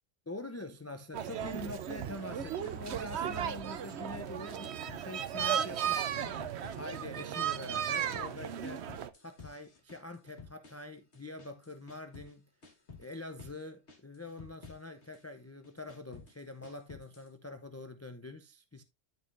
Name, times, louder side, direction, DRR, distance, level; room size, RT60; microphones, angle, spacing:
voice 1, 0.3-8.9 9.2-12.4 13.0-18.8, left 2 dB, 15° left, 0.5 m, -45 dB
sound 1, 1.1-9.1, right 9 dB, 65° right, 0.9 m, -35 dB
sound 2, 1.4-2.9 3.1-4.4 4.6-5.6 5.9-7.3 7.6-12.3 12.6-13.6 13.9-15.2 15.6-17.3, left 4 dB, 60° left, 2.1 m, -53 dB
12.5 x 5.3 x 2.5 m
omnidirectional pair, 1.3 m